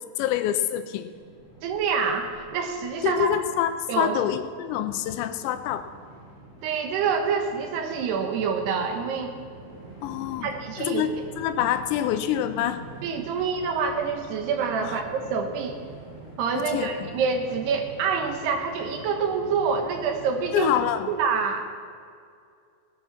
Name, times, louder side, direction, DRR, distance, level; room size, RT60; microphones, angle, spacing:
voice 1, 0.2-1.1 3.0-5.9 10.0-10.5 10.8-11.1 11.4-12.8 14.8-15.0 16.5-16.9 20.5-21.1, left 11 dB, 85° left, 10 dB, 3.0 m, -26 dB
Train, 1.1-21.1, right 2 dB, 5° left, 3.8 m, -45 dB
voice 2, 1.6-3.3 3.9-4.2 6.6-9.3 10.4-11.1 13.0-15.8 16.4-20.7 21.1-21.6, right 5 dB, 75° right, 4 dB, 3.1 m, -26 dB
17.0 x 11.0 x 5.9 m, 2.2 s
omnidirectional pair, 5.0 m